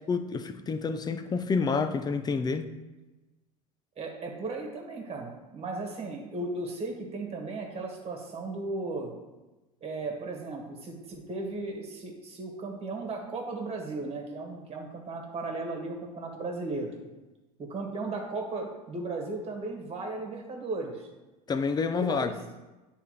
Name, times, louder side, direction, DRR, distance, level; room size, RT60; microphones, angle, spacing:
voice 1, 0.1-2.7 21.5-22.3, left 4 dB, 20° left, 9 dB, 0.5 m, -28 dB
voice 2, 4.0-9.1 9.8-16.9 17.6-21.1 21.9-22.2, right 3 dB, 30° right, 1 dB, 1.7 m, -36 dB
9.7 x 3.4 x 3.2 m, 1.1 s
hypercardioid pair, 80°, 20 cm